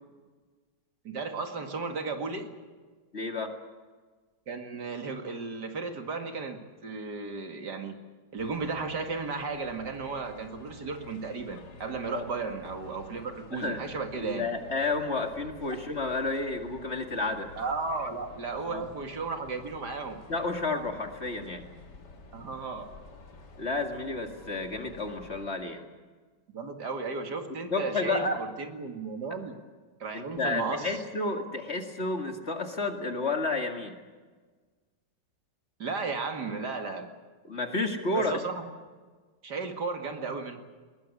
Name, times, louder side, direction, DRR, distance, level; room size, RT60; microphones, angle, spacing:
voice 1, 1.0-2.5 4.5-7.9 8.3-14.5 15.6-15.8 17.5-20.2 22.3-22.9 26.5-29.5 30.0-31.0 35.8-37.1 38.1-38.7 39.4-40.6, right 4 dB, 65° right, 5 dB, 2.7 m, -34 dB
voice 2, 3.1-3.6 12.1-12.3 13.5-13.8 14.2-17.5 18.7-18.8 20.3-21.7 23.6-25.8 27.7-28.4 30.1-33.9 37.4-38.4, left 3 dB, 40° left, 5 dB, 2.4 m, -31 dB
sound 1, 8.4-25.5, left 2 dB, 70° left, 2.8 m, -50 dB
21.5 x 21.0 x 8.4 m, 1.4 s
omnidirectional pair, 1.9 m